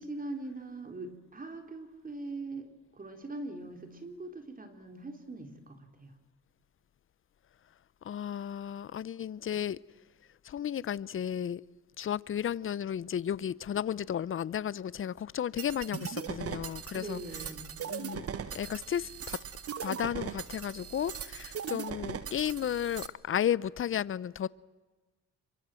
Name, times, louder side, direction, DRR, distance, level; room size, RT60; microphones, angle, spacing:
voice 1, 0.0-2.7 2.9-6.1 17.0-17.7, right 2 dB, 30° right, 3.7 m, -42 dB
voice 2, 8.0-9.8 10.4-11.6 12.0-17.2 17.9-18.3 18.5-19.4 19.8-24.5, left 9 dB, 45° left, 0.7 m, -33 dB
sound 1, 15.6-23.1, right 7 dB, 50° right, 1.5 m, -39 dB
26.5 x 23.5 x 7.7 m
cardioid pair, 90°, 30 cm